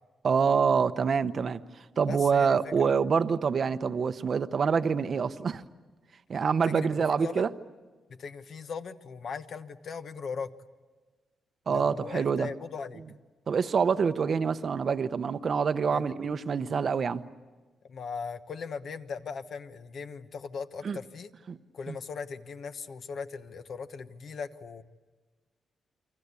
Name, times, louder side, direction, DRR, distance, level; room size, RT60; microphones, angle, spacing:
voice 1, 0.2-1.6 2.0-5.6 6.3-7.5 11.7-12.5 13.5-17.2 20.8-21.0 21.5-21.6 21.9-22.0, right 6 dB, 40° right, 12 dB, 0.8 m, -26 dB
voice 2, 2.1-2.9 6.6-7.4 8.1-10.5 11.7-13.0 15.9-16.1 17.9-21.3 21.7-24.8, left 5 dB, 50° left, 9 dB, 1.1 m, -39 dB
28.5 x 24.5 x 8.3 m, 1.3 s
wide cardioid pair, 155°, 0 cm